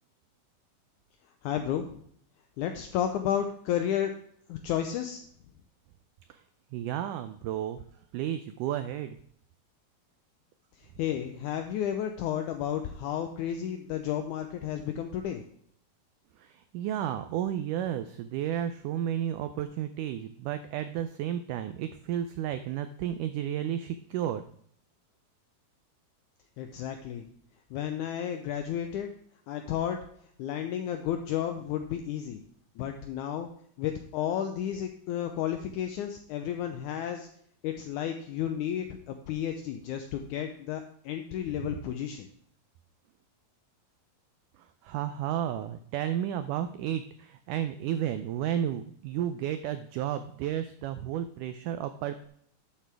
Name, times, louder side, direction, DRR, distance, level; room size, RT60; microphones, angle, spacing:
voice 1, 1.4-2.0 2.6-4.1 4.5-5.2 10.8-15.4 26.6-27.3 27.7-29.1 29.5-30.0 30.4-32.4 32.8-33.5 33.8-37.3 37.6-42.3, left 10 dB, 85° left, 6 dB, 1.7 m, -32 dB
voice 2, 6.7-7.8 8.1-9.2 16.4-24.4 41.6-41.7 44.8-52.3, right 10 dB, 90° right, 10 dB, 1.8 m, -32 dB
12.0 x 7.5 x 3.4 m, 0.65 s
omnidirectional pair, 4.3 m